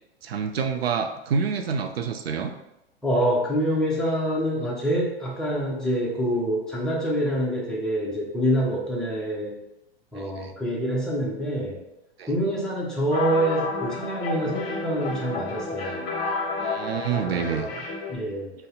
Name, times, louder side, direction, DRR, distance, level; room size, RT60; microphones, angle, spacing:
voice 1, 0.2-2.5 10.1-10.5 12.2-12.3 16.6-17.7, right 6 dB, 70° right, 7 dB, 0.5 m, -27 dB
voice 2, 3.0-9.6 10.1-11.8 12.3-16.1 17.1-17.8 18.1-18.5, right 1 dB, ahead, -5 dB, 0.6 m, -26 dB
sound 1, 13.1-18.2, left 3 dB, 40° left, 0.8 m, -30 dB
2.6 x 2.1 x 3.8 m, 0.89 s
figure-of-eight pair, 95°, 31 cm